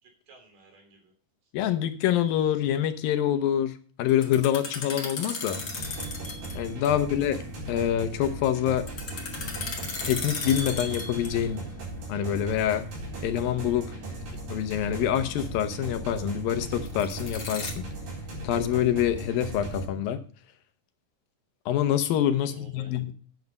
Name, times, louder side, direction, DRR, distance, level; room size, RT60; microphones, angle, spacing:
voice 1, 0.0-1.1 13.8-14.4 22.3-22.9, right 4 dB, 70° right, 3 dB, 4.8 m, -54 dB
voice 2, 1.5-3.7 4.0-5.6 6.6-7.4 7.7-8.9 10.0-11.6 12.1-12.9 13.2-13.9 14.5-17.9 18.4-20.2 21.7-23.1, left 10 dB, 90° left, 9 dB, 2.8 m, -26 dB
sound 1, 4.1-6.6 6.8-6.9 8.9-11.5 16.9-17.7, left 3 dB, 30° left, 1.9 m, -35 dB
sound 2, 5.5-19.9, right 2 dB, 90° right, 6.1 m, -38 dB
9.4 x 8.4 x 5.3 m, 0.43 s
omnidirectional pair, 4.0 m